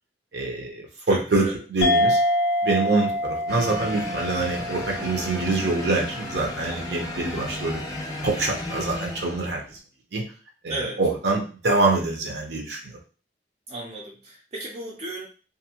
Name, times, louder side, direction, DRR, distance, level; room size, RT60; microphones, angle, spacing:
voice 1, 0.3-2.2 2.6-7.8 8.2-9.6 10.1-10.2 10.6-13.0, right 3 dB, 70° right, 1 dB, 0.7 m, -25 dB
voice 2, 1.1-1.6 10.7-11.0 13.7-15.3, right 1 dB, 40° right, -4 dB, 0.5 m, -34 dB
sound 1, 1.8-6.7, left 1 dB, 65° left, 0.4 m, -26 dB
sound 2, 3.5-9.8, left 1 dB, 20° left, 0.6 m, -34 dB
2.6 x 2.5 x 2.8 m, 0.37 s
head